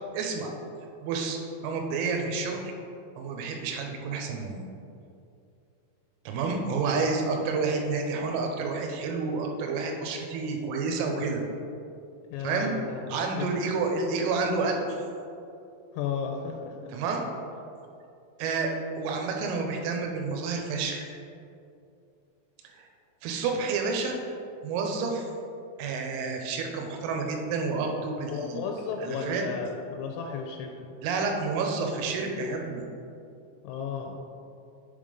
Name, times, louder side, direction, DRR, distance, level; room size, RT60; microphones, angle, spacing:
voice 1, 0.1-0.5 1.0-1.4 1.6-2.7 3.2-4.6 6.3-11.4 12.4-12.7 13.1-15.0 16.9-17.3 18.4-18.7 19.0-21.0 22.7-22.9 23.2-24.2 24.6-25.2 25.8-28.6 29.0-29.4 31.0-32.8, right 4 dB, 80° right, 2 dB, 3.2 m, -29 dB
voice 2, 12.3-13.5 15.9-16.9 28.3-30.9 33.6-34.2, left 6 dB, 85° left, 2 dB, 3.1 m, -34 dB
7.8 x 3.6 x 5.1 m, 2.6 s
omnidirectional pair, 5.9 m